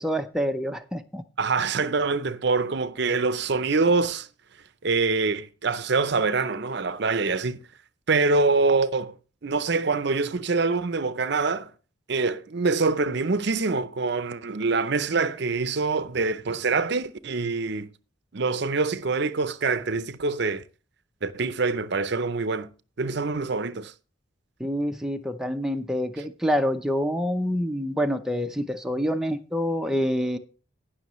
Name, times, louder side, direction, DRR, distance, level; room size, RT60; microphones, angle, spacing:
voice 1, 0.0-1.2 24.6-30.4, equal, ahead, 0.6 m, -27 dB
voice 2, 1.4-4.3 4.8-7.6 8.1-9.1 9.4-11.7 12.1-17.9 18.3-20.6 21.2-22.7 23.0-23.9, right 4 dB, 55° right, 0.6 m, -25 dB
19.0 x 6.3 x 3.1 m
head